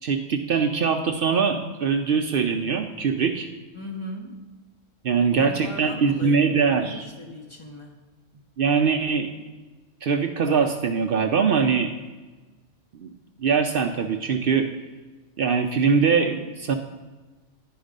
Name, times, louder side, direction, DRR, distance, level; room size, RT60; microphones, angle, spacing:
voice 1, 0.0-3.5 5.0-7.0 8.6-9.3 10.0-11.9 12.9-13.1 13.4-14.7 15.4-16.7, right 5 dB, 60° right, 6 dB, 0.6 m, -22 dB
voice 2, 3.7-4.4 5.1-8.0, left 1 dB, 25° left, 1 dB, 1.0 m, -38 dB
10.0 x 4.7 x 5.1 m, 1.2 s
omnidirectional pair, 1.3 m